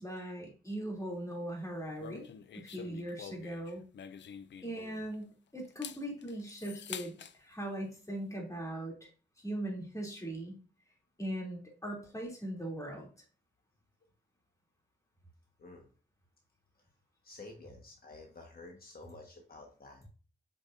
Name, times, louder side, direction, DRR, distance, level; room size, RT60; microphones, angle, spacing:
voice 1, 0.0-3.8 4.6-9.1 9.4-10.5 11.2-13.1, right 1 dB, 15° left, -1 dB, 2.9 m, -40 dB
sound 1, 2.0-5.2 5.6-7.4, left 8 dB, 80° left, 0.5 m, -47 dB
voice 2, 17.2-20.0, left 2 dB, 55° left, 1 dB, 1.4 m, -51 dB
8.3 x 5.1 x 2.6 m, 0.36 s
wide cardioid pair, 100°, 19 cm